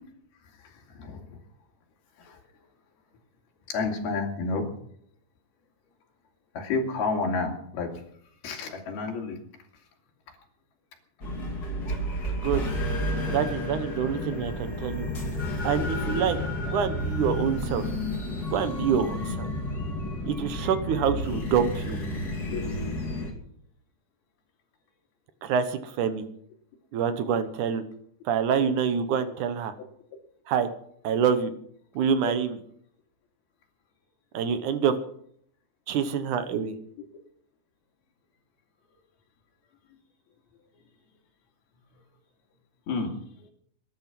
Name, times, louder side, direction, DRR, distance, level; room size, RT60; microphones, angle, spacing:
voice 1, 0.6-1.4 2.2-2.4 3.7-4.7 6.5-8.0 8.4-9.4 12.1-12.3 22.5-22.6 29.3-29.4 32.2-32.3 42.9-43.5, left 3 dB, 70° left, 0 dB, 4.7 m, -31 dB
sound 1, 11.2-23.3, left 1 dB, 25° left, 3.0 m, -31 dB
voice 2, 13.3-15.1 15.6-16.4 16.7-17.8 18.5-19.5 20.3-22.0 25.4-26.3 26.9-27.8 28.3-29.7 30.5-30.7 31.0-31.5 32.0-32.5 34.3-34.9 35.9-36.7, right 7 dB, 65° right, 10 dB, 2.1 m, -26 dB
20.0 x 11.0 x 6.0 m, 0.66 s
omnidirectional pair, 4.6 m